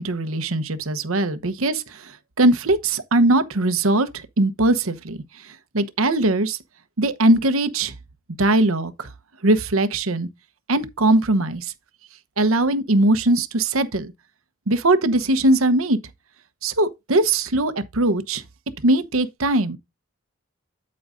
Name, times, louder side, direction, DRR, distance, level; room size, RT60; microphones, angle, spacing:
voice 1, 0.0-5.2 5.4-6.6 7.0-7.9 8.4-9.1 9.4-10.3 10.7-11.7 12.4-14.1 14.7-16.0 16.6-18.4 18.8-19.8, right 2 dB, 90° right, 1.0 m, -20 dB
8.7 x 8.5 x 2.6 m
head